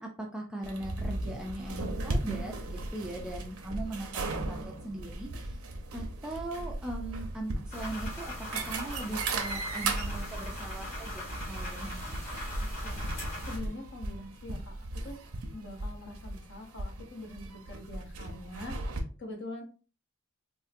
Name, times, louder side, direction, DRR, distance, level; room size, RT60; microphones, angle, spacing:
voice 1, 0.0-5.6 5.9-12.0, right 1 dB, 5° right, -1 dB, 0.4 m, -40 dB
sound 1, 0.6-19.0, right 2 dB, 75° right, 0.7 m, -37 dB
sound 2, 7.7-13.6, equal, 30° left, 1.8 m, -39 dB
voice 2, 12.6-13.0 13.4-15.2 15.5-19.6, left 2 dB, 50° left, 2 dB, 0.8 m, -44 dB
3.8 x 2.5 x 2.5 m, 0.35 s
head